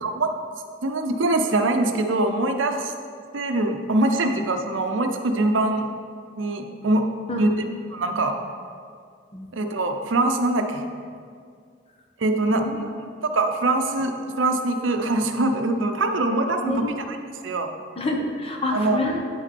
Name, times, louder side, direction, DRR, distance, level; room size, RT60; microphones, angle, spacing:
voice 1, 0.0-0.3 0.8-2.9 3.3-5.9 6.4-7.0 7.4-7.5 7.9-8.4 9.5-10.8 12.2-12.6 13.2-17.2 17.4-17.7 18.7-19.0, right 2 dB, 75° right, 5 dB, 0.7 m, -23 dB
voice 2, 16.6-17.0 18.0-19.2, left 1 dB, 30° left, 1 dB, 1.0 m, -27 dB
9.6 x 6.0 x 4.3 m, 2.2 s
head